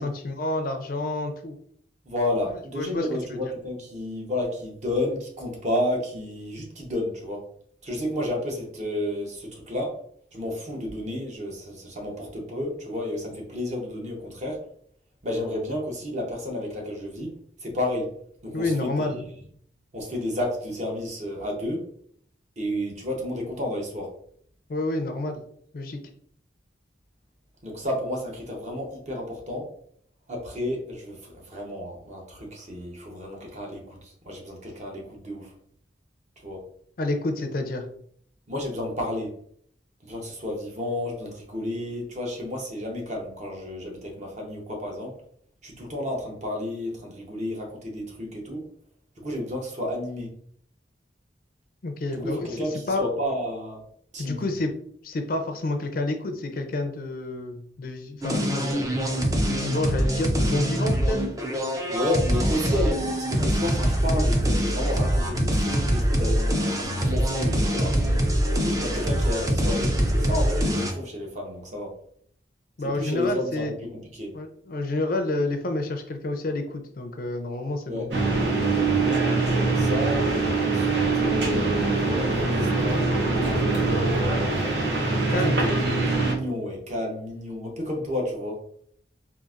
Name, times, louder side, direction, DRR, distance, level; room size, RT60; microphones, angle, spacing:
voice 1, 0.0-1.6 2.8-3.1 18.5-19.3 24.7-25.4 25.7-26.0 37.0-37.9 51.8-53.1 54.2-54.7 55.0-58.8 59.4-61.2 72.8-73.7 74.3-78.1 85.3-85.7, left 2 dB, 50° left, 6 dB, 0.4 m, -29 dB
voice 2, 2.0-7.4 7.8-10.0 10.3-14.6 15.2-17.3 17.6-18.1 18.4-19.1 19.9-21.8 22.6-24.1 27.6-29.7 30.3-35.5 36.4-36.6 38.5-39.3 40.0-45.1 45.6-48.6 49.2-50.3 52.2-53.8 54.1-54.5 61.9-68.0 68.5-71.9 72.9-74.3 77.9-78.1 79.6-80.3 80.6-83.7 85.4-88.6, left 1 dB, 40° right, 0 dB, 0.8 m, -31 dB
sound 1, 58.2-70.9, equal, 20° right, 0.4 m, -24 dB
sound 2, 78.1-86.3, right 3 dB, 75° right, 0.9 m, -23 dB
3.9 x 2.5 x 2.4 m, 0.62 s
head